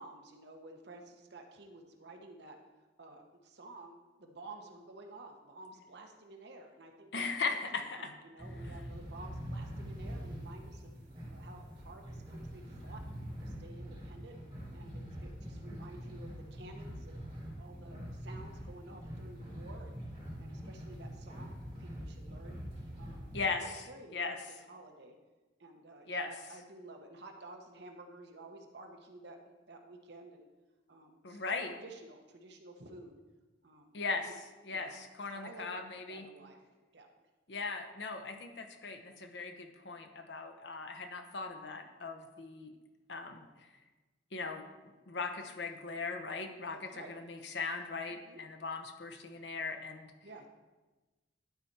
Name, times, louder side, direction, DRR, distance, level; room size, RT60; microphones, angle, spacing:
voice 1, 0.0-2.6 3.0-10.9 11.3-13.0 13.4-14.3 14.7-17.3 17.6-20.0 20.4-22.6 23.0-23.3 23.6-25.2 25.6-29.4 29.7-30.5 30.9-33.2 33.6-34.0 34.7-35.0 35.3-35.7 36.1-36.6 36.9-37.1 46.7-47.1 48.1-48.4 50.2-50.5, right 2 dB, 60° right, 3 dB, 1.0 m, -52 dB
voice 2, 7.1-8.1 23.3-24.4 26.1-26.4 31.2-31.7 33.9-34.3 34.6-36.3 37.5-42.7 43.1-43.7 44.3-44.6 45.1-50.1, left 4 dB, 65° left, 6 dB, 0.8 m, -38 dB
sound 1, 8.4-23.4, equal, 30° right, 3.0 m, -44 dB
11.5 x 4.2 x 4.6 m, 1.2 s
head